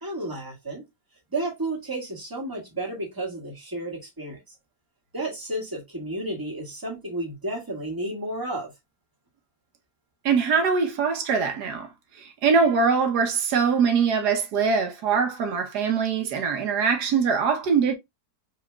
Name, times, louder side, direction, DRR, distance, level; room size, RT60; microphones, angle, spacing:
voice 1, 0.0-0.8 1.3-4.4 5.1-8.7, right 1 dB, 15° right, 1.7 m, -32 dB
voice 2, 10.2-11.9 12.4-17.9, right 5 dB, 85° right, 1.5 m, -22 dB
4.8 x 4.2 x 2.3 m
omnidirectional pair, 1.7 m